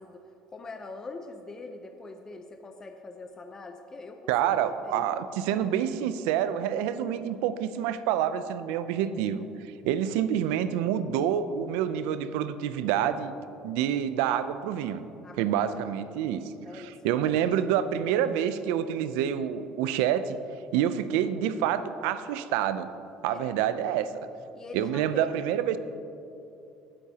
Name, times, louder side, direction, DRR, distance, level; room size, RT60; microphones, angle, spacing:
voice 1, 0.0-5.1 15.2-16.0 16.6-17.3 23.3-24.0 24.5-25.4, left 3 dB, 25° left, 5 dB, 0.7 m, -44 dB
voice 2, 4.3-9.5 9.8-13.3 13.6-15.0 15.4-16.4 16.7-20.4 20.7-22.9 23.2-24.1 24.7-25.8, right 10 dB, 85° right, 13 dB, 0.5 m, -27 dB
17.5 x 8.5 x 2.9 m, 2.8 s
supercardioid pair, 100°, 2 cm